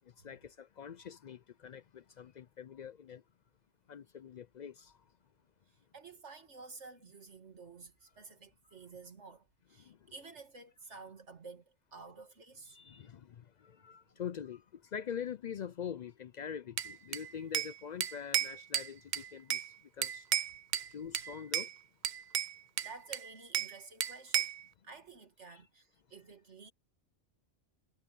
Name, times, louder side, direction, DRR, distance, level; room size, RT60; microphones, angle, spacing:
voice 1, 0.2-3.2 3.9-4.9 9.9-10.0 12.7-13.3 13.8-14.6 14.9-19.6 20.0-20.2 20.9-21.7 25.5-25.6, left 8 dB, 60° left, 0.4 m, -44 dB
voice 2, 5.9-12.8 13.0-13.1 22.8-24.5 24.8-26.7, right 4 dB, 75° right, 2.6 m, -52 dB
Bell / Glass, 16.8-17.7 18.0-19.7 20.0-20.9 21.1-21.7 22.0-23.7 24.0-24.6, right 10 dB, 55° right, 0.5 m, -34 dB
omnidirectional pair, 1.2 m